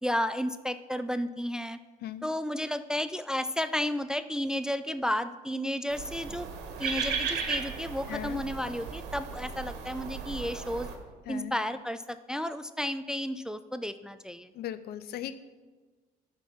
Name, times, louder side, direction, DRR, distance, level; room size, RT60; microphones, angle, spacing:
voice 1, 0.0-1.8 2.2-6.5 6.8-10.9 11.3-14.5, equal, 5° right, 11 dB, 0.3 m, -32 dB
sound 1, 5.9-11.0, right 6 dB, 90° right, 1.4 m, -36 dB
voice 2, 8.1-8.4 11.3-11.5 14.5-15.3, left 11 dB, 70° left, 13 dB, 0.6 m, -37 dB
11.5 x 4.5 x 5.7 m, 1.3 s
cardioid pair, 110°, 17 cm